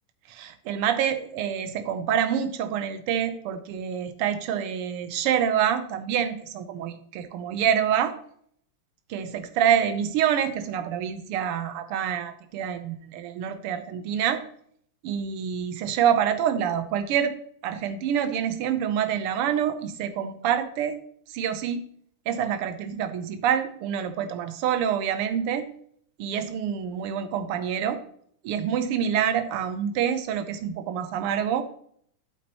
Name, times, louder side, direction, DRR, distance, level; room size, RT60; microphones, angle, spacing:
voice 1, 0.3-8.1 9.1-14.4 15.0-17.3 17.6-21.0 21.3-21.9 22.3-25.6 26.2-28.0 28.4-31.6, right 9 dB, 90° right, 9 dB, 1.7 m, -26 dB
8.5 x 8.4 x 2.9 m, 0.63 s
omnidirectional pair, 2.4 m